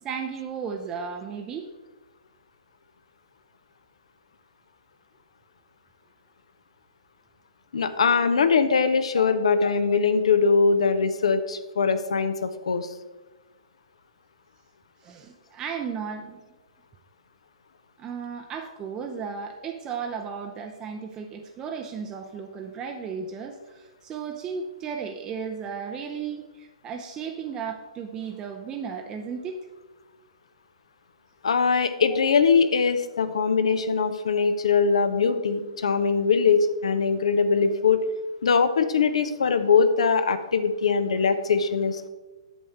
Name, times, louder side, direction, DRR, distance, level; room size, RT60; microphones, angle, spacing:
voice 1, 0.0-1.7 9.1-9.3 15.0-16.4 18.0-29.6 32.1-32.2, right 6 dB, 20° right, 4 dB, 0.6 m, -35 dB
voice 2, 7.7-12.9 31.4-38.0 38.4-42.1, left 5 dB, 65° left, 11 dB, 0.7 m, -22 dB
8.1 x 6.5 x 4.4 m, 1.2 s
figure-of-eight pair, 120°, 3 cm